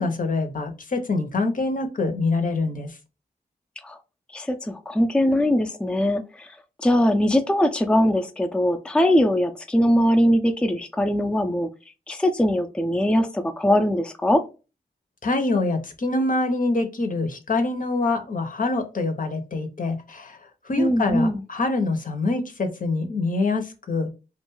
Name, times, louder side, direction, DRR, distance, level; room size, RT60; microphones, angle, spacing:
voice 1, 0.0-3.0 15.2-20.4 20.6-24.1, left 3 dB, 55° left, 6 dB, 0.7 m, -25 dB
voice 2, 4.3-11.7 12.1-14.4 20.8-21.4, equal, 5° left, 6 dB, 0.4 m, -21 dB
2.5 x 2.3 x 3.0 m, 0.30 s
cardioid pair, 50°, 16 cm